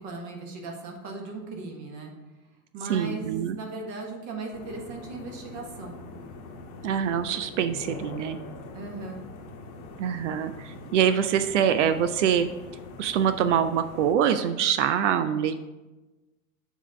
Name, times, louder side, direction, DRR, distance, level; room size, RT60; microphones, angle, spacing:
voice 1, 0.0-2.1 2.7-6.0 8.7-9.2, right 3 dB, 45° right, 1 dB, 1.6 m, -37 dB
voice 2, 2.9-3.6 6.8-8.4 10.0-12.5 13.0-15.6, right 8 dB, 60° right, 11 dB, 0.5 m, -24 dB
sound 1, 4.5-14.1, left 3 dB, 40° left, 1.1 m, -43 dB
7.1 x 3.6 x 5.7 m, 1.1 s
figure-of-eight pair, 80°, 42 cm